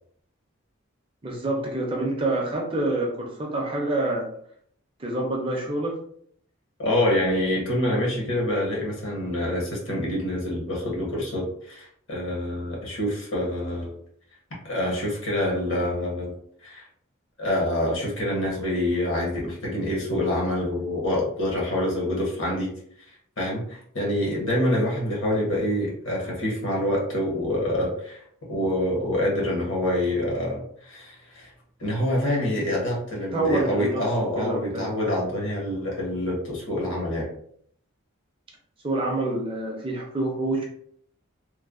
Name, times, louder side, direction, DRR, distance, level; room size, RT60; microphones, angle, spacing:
voice 1, 1.2-4.3 5.0-6.0 33.3-34.9 38.8-40.6, right 2 dB, 25° right, 0 dB, 0.5 m, -27 dB
voice 2, 6.8-14.0 14.6-16.3 16.6-16.8 17.4-22.7 23.4-28.2 28.5-31.5 31.8-37.3, left 1 dB, 60° left, -3 dB, 1.0 m, -26 dB
3.1 x 2.1 x 2.4 m, 0.64 s
head